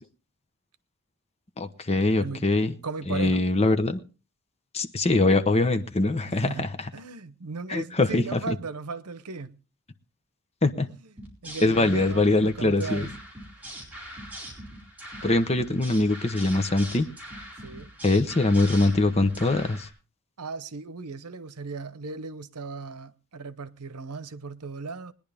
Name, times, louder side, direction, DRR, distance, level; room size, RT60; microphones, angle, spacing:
voice 1, 1.6-2.7 3.1-4.0 4.7-6.9 7.7-8.6 10.6-10.9 11.6-13.1 15.2-17.1 18.0-19.9, left 2 dB, 30° left, 0.9 m, -23 dB
voice 2, 2.8-3.4 6.2-9.6 10.9-11.0 11.4-13.1 15.2-15.3 17.6-17.9 20.4-25.1, right 4 dB, 90° right, 0.9 m, -37 dB
sound 1, 11.2-19.9, equal, 5° right, 4.5 m, -41 dB
21.0 x 10.5 x 3.5 m
head